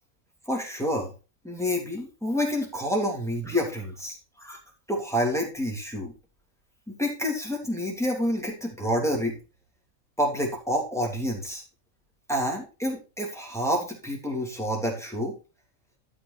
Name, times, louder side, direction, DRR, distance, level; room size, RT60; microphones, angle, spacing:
voice 1, 0.5-1.1 1.4-4.6 4.9-6.1 6.9-9.4 10.2-11.6 12.3-15.3, equal, ahead, -1 dB, 3.0 m, -28 dB
12.5 x 5.9 x 4.3 m, 0.31 s
omnidirectional pair, 1.4 m